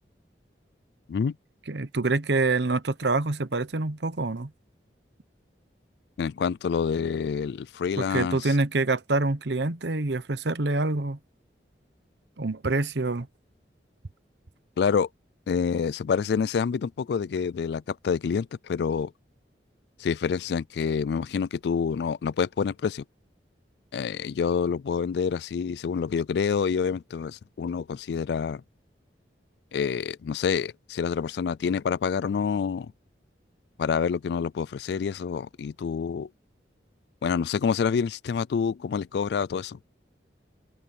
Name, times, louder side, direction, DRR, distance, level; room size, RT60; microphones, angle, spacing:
voice 1, 1.7-4.5 8.0-11.2 12.4-13.3, right 3 dB, 75° right, 1.0 m, -26 dB
voice 2, 6.2-8.5 14.8-15.1 15.5-19.1 20.0-23.0 23.9-28.6 29.7-32.9 33.8-36.3 37.2-39.8, left 6 dB, 70° left, 0.3 m, -27 dB
open air
head